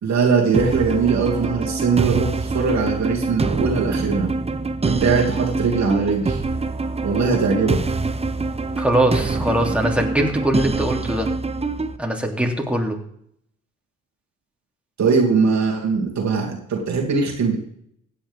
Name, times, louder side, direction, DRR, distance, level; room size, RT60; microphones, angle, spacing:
voice 1, 0.0-4.3 4.8-6.4 7.0-7.8 15.0-17.6, right 5 dB, 65° right, 0 dB, 2.6 m, -20 dB
sound 1, 0.5-12.0, right 3 dB, 20° right, 0.9 m, -25 dB
voice 2, 8.8-11.3 12.0-13.0, right 1 dB, 5° right, 1 dB, 3.0 m, -22 dB
16.0 x 8.5 x 3.6 m, 0.68 s
supercardioid pair, 60°, 30 cm